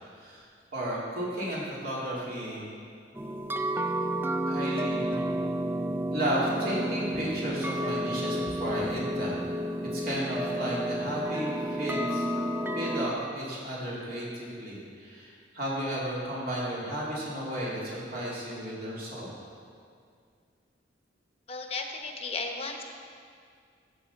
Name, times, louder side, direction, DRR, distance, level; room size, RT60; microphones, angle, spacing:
voice 1, 0.7-2.8 4.5-5.2 6.1-9.4 9.9-12.3 12.7-19.3, right 1 dB, 50° right, -6 dB, 2.8 m, -33 dB
sound 1, 3.2-13.1, right 1 dB, 10° right, 0.4 m, -31 dB
voice 2, 21.5-22.8, left 3 dB, 30° left, 3 dB, 0.9 m, -35 dB
14.0 x 7.5 x 4.2 m, 2.2 s
head